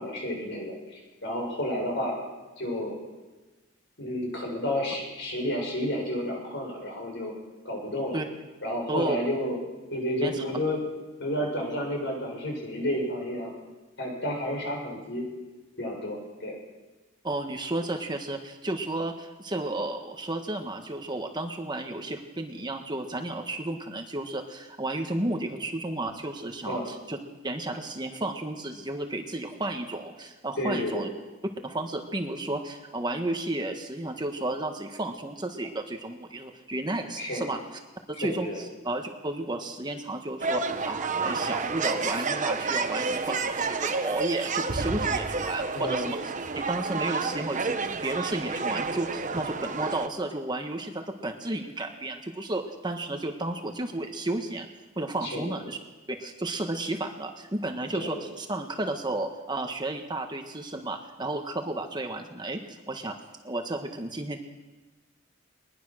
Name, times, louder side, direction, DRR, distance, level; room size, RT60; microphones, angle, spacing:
voice 1, 0.0-2.2 2.6-3.0 4.0-7.3 7.6-8.2 8.6-9.6 9.9-10.8 11.2-13.5 14.0-15.2 15.8-16.6 26.7-26.9 30.6-31.1 37.2-37.4 38.2-38.6 45.7-46.1 55.2-55.5 57.9-58.2, equal, 60° left, 0 dB, 7.3 m, -31 dB
voice 2, 17.2-27.2 27.4-31.1 31.6-37.6 38.1-54.7 55.0-55.8 56.1-63.1 63.4-64.4, right 2 dB, 20° right, 4 dB, 1.5 m, -32 dB
sound 1, 40.4-50.1, right 4 dB, 40° right, 1.1 m, -30 dB
21.5 x 21.0 x 6.4 m, 1.2 s
head